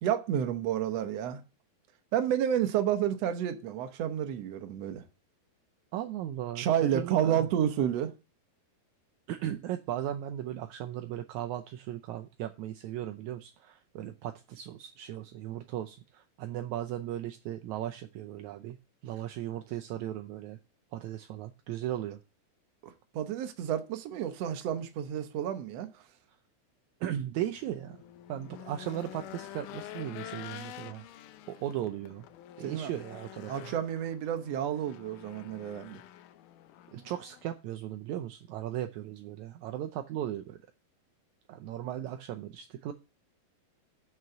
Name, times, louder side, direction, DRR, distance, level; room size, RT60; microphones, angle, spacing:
voice 1, 0.0-1.4 2.1-5.0 6.6-8.1 22.8-26.0 32.6-32.9 33.5-36.0, right 10 dB, 65° right, 1.7 m, -30 dB
voice 2, 5.9-7.5 9.3-18.8 19.0-20.6 20.9-22.2 27.0-28.0 28.3-31.1 31.5-32.3 32.6-33.7 36.9-40.6 41.5-42.9, right 12 dB, 80° right, 1.7 m, -37 dB
Race car auto racing / Engine, 27.4-37.4, left 12 dB, 75° left, 2.1 m, -48 dB
7.2 x 6.3 x 7.8 m
omnidirectional pair, 4.1 m